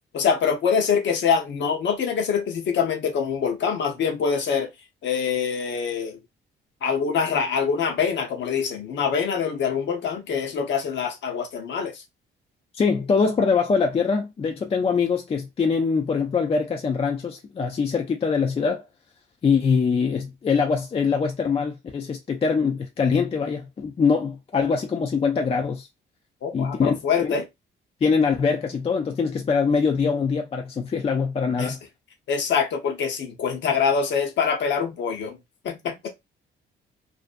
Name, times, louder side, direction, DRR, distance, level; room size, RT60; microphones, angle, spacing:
voice 1, 0.1-4.7 5.0-6.2 6.8-12.0 26.4-27.5 31.6-31.8 32.3-35.4 35.6-36.1, left 6 dB, 65° left, 0.8 m, -24 dB
voice 2, 12.8-18.8 19.4-25.9 26.5-26.9 27.2-27.3 28.0-31.8, left 5 dB, 30° left, 0.4 m, -23 dB
2.5 x 2.1 x 2.5 m
cardioid pair, 90°, 20 cm